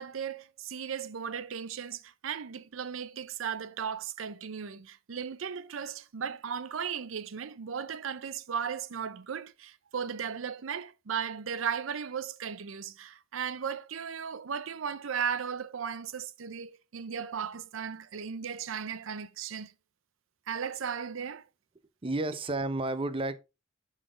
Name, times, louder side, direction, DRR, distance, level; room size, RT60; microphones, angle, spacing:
voice 1, 0.0-19.7 20.5-21.5, right 7 dB, 90° right, 0.6 m, -36 dB
voice 2, 22.0-23.4, right 2 dB, 30° right, 0.6 m, -31 dB
11.0 x 4.1 x 3.7 m
head